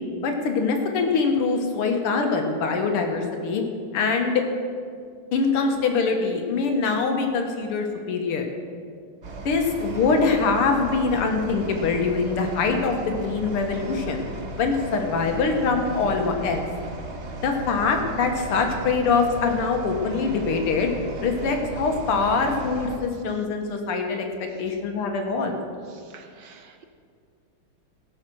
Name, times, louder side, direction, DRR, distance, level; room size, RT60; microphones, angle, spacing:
voice 1, 0.2-3.6 3.9-4.4 5.3-8.4 9.5-14.3 14.6-16.6 17.4-20.9 21.2-25.6, left 4 dB, 90° left, 4 dB, 2.2 m, -23 dB
sound 1, 9.2-23.0, right 2 dB, 40° right, 1.1 m, -36 dB
voice 2, 26.1-26.8, right 6 dB, 65° right, 6 dB, 1.2 m, -49 dB
16.5 x 6.5 x 6.2 m, 2.2 s
omnidirectional pair, 2.4 m